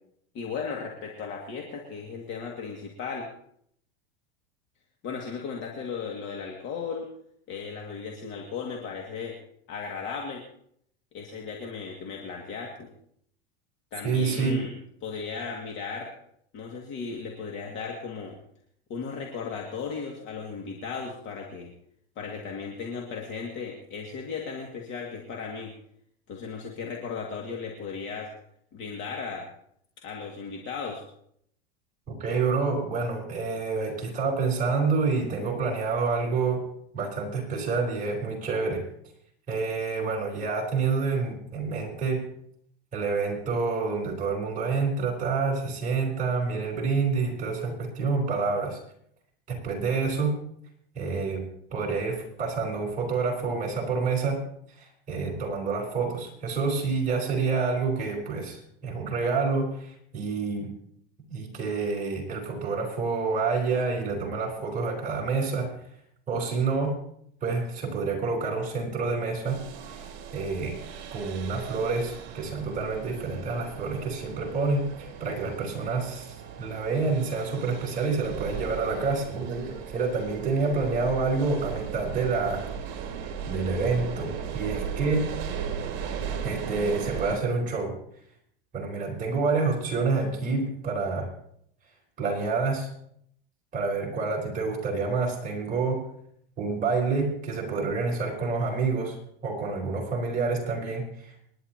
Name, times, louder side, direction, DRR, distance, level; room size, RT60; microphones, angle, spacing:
voice 1, 0.3-3.3 5.0-7.1 7.5-9.4 9.7-10.4 11.1-12.9 13.9-14.7 15.0-16.1 16.5-18.4 18.9-21.7 22.2-25.7 26.3-28.3 28.7-29.5 30.0-31.0, left 5 dB, 40° left, 0 dB, 2.3 m, -36 dB
voice 2, 14.0-14.6 32.1-36.6 36.9-38.8 39.5-42.2 42.9-48.8 49.5-50.4 50.9-51.4 51.7-54.4 54.8-60.7 61.3-65.7 66.3-67.0 67.4-69.6 69.9-70.8 71.1-82.6 83.5-85.3 86.4-87.9 88.7-91.3 92.2-92.9 93.7-96.0 96.6-99.2 99.4-101.3, right 4 dB, 25° right, -2 dB, 4.6 m, -28 dB
sound 1, 69.5-87.4, right 7 dB, 40° right, 3.0 m, -37 dB
28.5 x 11.0 x 2.9 m, 0.70 s
supercardioid pair, 135°, 30 cm